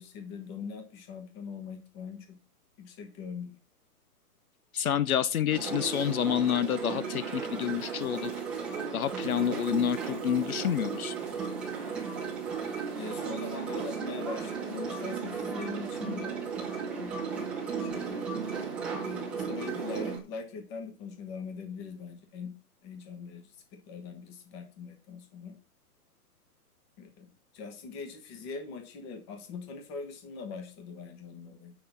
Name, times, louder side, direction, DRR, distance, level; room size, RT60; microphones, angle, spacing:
voice 1, 0.0-2.4 2.8-3.5 12.6-16.3 17.0-17.5 17.8-18.2 19.0-22.5 22.8-25.6 27.0-31.7, left 5 dB, 20° left, 6 dB, 1.2 m, -42 dB
voice 2, 4.7-8.3 8.9-11.1, left 9 dB, 60° left, 15 dB, 0.8 m, -28 dB
sound 1, 5.5-20.2, right 5 dB, ahead, 0.8 m, -35 dB
8.6 x 5.7 x 6.9 m, 0.34 s
hypercardioid pair, 170°, 47 cm